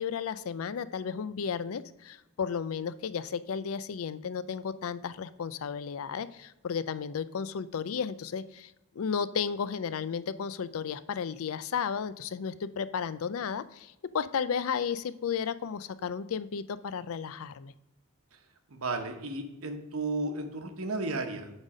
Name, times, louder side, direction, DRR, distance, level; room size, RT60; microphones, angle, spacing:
voice 1, 0.0-8.7 9.0-17.7, left 6 dB, 75° left, 14 dB, 0.4 m, -33 dB
voice 2, 18.7-21.5, right 2 dB, 75° right, 5 dB, 1.0 m, -33 dB
8.9 x 4.1 x 4.9 m, 0.91 s
head